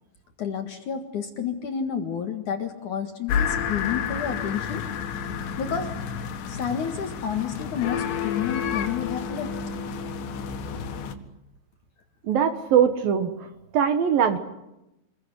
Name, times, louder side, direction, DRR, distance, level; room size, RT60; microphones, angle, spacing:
voice 1, 0.4-4.9 5.6-5.9 6.5-9.6, left 7 dB, 55° left, 5 dB, 2.6 m, -30 dB
sound 1, 3.3-11.1, left 7 dB, 75° left, 4.0 m, -30 dB
voice 2, 12.2-13.3 13.7-14.4, right 8 dB, 60° right, 8 dB, 2.7 m, -21 dB
28.5 x 22.0 x 9.7 m, 0.90 s
omnidirectional pair, 5.3 m